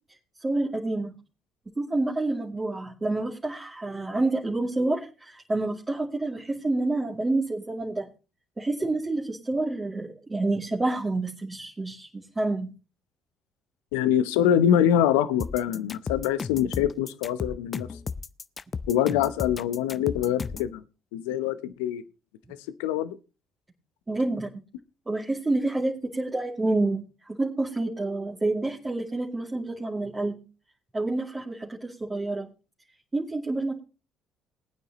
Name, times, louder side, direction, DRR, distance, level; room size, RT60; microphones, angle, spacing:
voice 1, 0.4-1.1 1.8-8.1 8.6-12.7 24.1-24.5 25.1-30.3 30.9-32.5 33.1-33.8, right 2 dB, 25° right, 2.5 m, -28 dB
voice 2, 13.9-17.9 18.9-20.8 21.1-22.0 22.8-23.2, left 10 dB, 80° left, 0.8 m, -24 dB
sound 1, 15.4-20.7, left 5 dB, 40° left, 0.7 m, -34 dB
20.0 x 9.3 x 3.0 m
hypercardioid pair, 50°, 0 cm